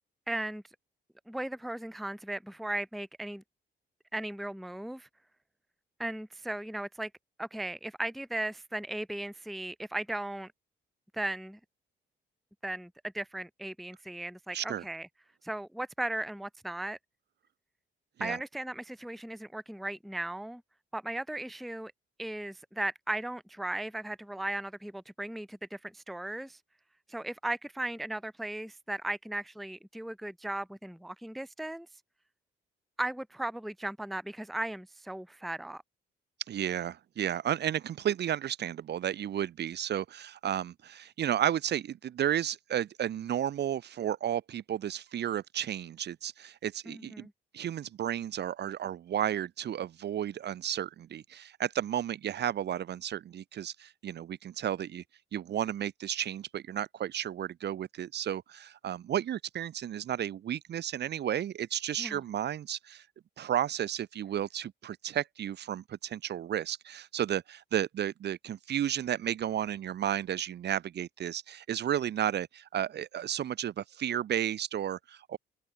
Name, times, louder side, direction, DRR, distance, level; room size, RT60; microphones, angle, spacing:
voice 1, 0.3-0.6 1.3-3.4 4.1-5.1 6.0-7.1 7.4-10.5 11.1-11.6 12.6-15.1 15.4-17.0 18.2-20.6 20.9-21.9 22.2-26.6 27.1-31.9 33.0-35.8 46.9-47.3 62.0-62.2, right 1 dB, ahead, 0.5 m, -37 dB
voice 2, 14.5-14.8 18.2-18.4 36.5-47.3 47.5-55.0 55.3-63.0 63.4-75.4, right 10 dB, 60° right, 0.9 m, -33 dB
cardioid pair, 90°, 20 cm